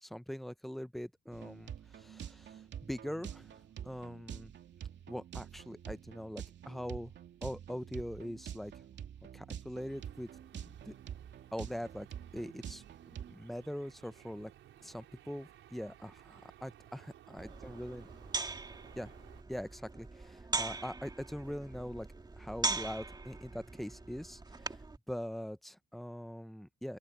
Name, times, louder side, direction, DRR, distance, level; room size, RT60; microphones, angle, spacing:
voice 1, 0.0-2.6 2.9-3.5 3.8-4.5 5.1-7.1 7.4-8.7 9.3-10.9 11.5-12.1 12.3-12.8 13.1-14.5 14.8-17.1 17.3-18.1 18.9-19.1 19.5-22.1 22.4-24.8 25.1-27.0, equal, ahead, 0.9 m, -42 dB
sound 1, 1.3-13.3, right 9 dB, 65° right, 2.7 m, -47 dB
sound 2, 9.9-19.4, right 12 dB, 80° right, 5.6 m, -58 dB
sound 3, 17.4-25.0, right 3 dB, 20° right, 1.9 m, -40 dB
open air
cardioid pair, 90°, 20 cm